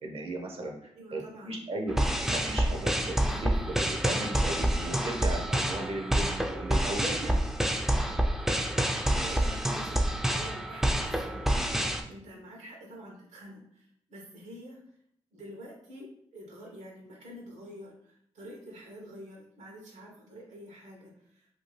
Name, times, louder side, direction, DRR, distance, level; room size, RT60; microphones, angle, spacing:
voice 1, 0.0-2.0 2.3-7.4, right 2 dB, 55° right, 2 dB, 0.6 m, -36 dB
voice 2, 0.9-1.6 3.2-3.7 9.2-14.8 15.3-21.5, equal, 85° right, -1 dB, 0.9 m, -47 dB
sound 1, 1.9-12.0, right 1 dB, 5° right, 0.3 m, -28 dB
2.7 x 2.3 x 3.0 m, 0.69 s
cardioid pair, 70°, 11 cm